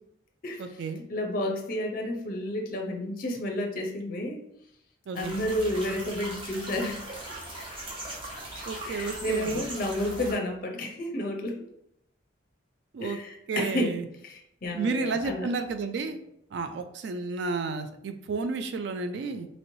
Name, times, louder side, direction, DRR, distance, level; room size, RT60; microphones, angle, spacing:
voice 1, 0.6-1.0 5.1-5.4 8.7-9.6 12.9-13.2 13.5-14.0 14.7-16.2 16.5-19.5, right 4 dB, 60° right, 8 dB, 0.3 m, -31 dB
voice 2, 1.1-4.4 5.1-7.0 8.9-11.6 13.0-15.5, left 1 dB, 45° left, 2 dB, 0.5 m, -31 dB
sound 1, 5.1-10.4, right 1 dB, 25° right, 0.7 m, -39 dB
3.0 x 3.0 x 2.6 m, 0.76 s
head